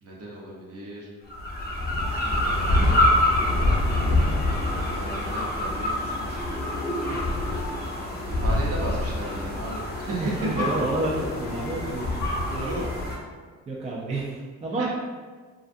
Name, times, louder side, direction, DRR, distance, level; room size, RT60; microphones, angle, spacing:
voice 1, 0.0-1.1 2.0-3.0 4.9-6.4 8.3-10.9 11.8-12.2 12.5-12.9 14.8-14.9, right 1 dB, 55° right, -4 dB, 0.8 m, -34 dB
sound 1, 1.3-13.2, left 1 dB, 30° left, 0.7 m, -25 dB
voice 2, 7.1-7.4 10.2-12.3 13.7-14.9, right 2 dB, 25° right, -3 dB, 0.4 m, -30 dB
2.4 x 2.4 x 2.5 m, 1.5 s
cardioid pair, 90°, 30 cm